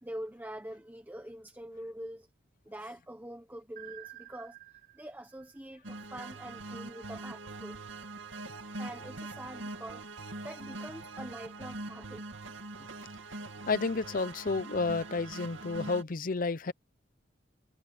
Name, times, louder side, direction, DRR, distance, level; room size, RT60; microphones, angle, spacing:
voice 1, 0.0-2.3 2.6-4.6 4.9-7.8 8.8-10.1 10.4-12.2 12.8-12.9, right 1 dB, 10° right, 1.0 m, -44 dB
sound 1, 3.8-6.7, right 14 dB, 45° right, 1.3 m, -52 dB
sound 2, 5.8-16.0, right 2 dB, 75° right, 2.5 m, -43 dB
voice 2, 13.7-16.7, left 4 dB, 45° left, 0.7 m, -31 dB
head